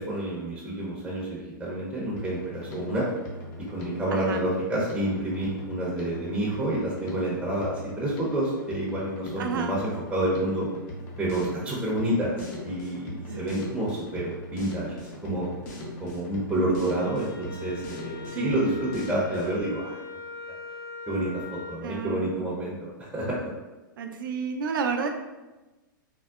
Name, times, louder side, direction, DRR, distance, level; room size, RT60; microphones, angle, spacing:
voice 1, 0.0-3.1 3.6-10.7 11.2-12.4 12.6-14.9 15.2-15.5 16.0-20.0 21.1-23.4, right 1 dB, 5° right, -6 dB, 0.6 m, -29 dB
Drum kit, 2.2-19.6, left 1 dB, 55° left, 0.7 m, -40 dB
voice 2, 4.1-4.4 9.4-9.7 13.3-13.8 18.3-18.7 21.8-22.6 24.0-25.1, right 5 dB, 75° right, 5 dB, 0.4 m, -31 dB
Wind instrument woodwind instrument, 17.0-21.8, left 5 dB, 90° left, 1.3 m, -41 dB
3.6 x 2.0 x 2.3 m, 1.1 s
hypercardioid pair, 125°, 11 cm